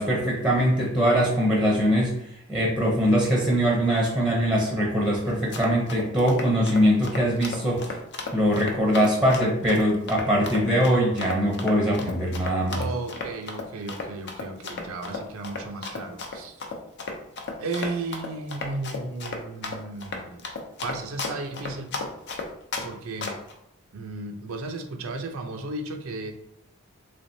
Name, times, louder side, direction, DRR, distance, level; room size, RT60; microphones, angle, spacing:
voice 1, 0.0-2.1 2.5-7.9 8.3-12.8, equal, 5° right, -3 dB, 0.6 m, -22 dB
Run, 5.3-22.9 23.2-23.5, left 3 dB, 55° left, 0.6 m, -34 dB
voice 2, 12.7-16.6 17.6-20.5 20.8-21.9 22.8-23.4 23.9-26.3, right 3 dB, 85° right, 4 dB, 0.5 m, -34 dB
3.3 x 3.3 x 2.7 m, 0.77 s
head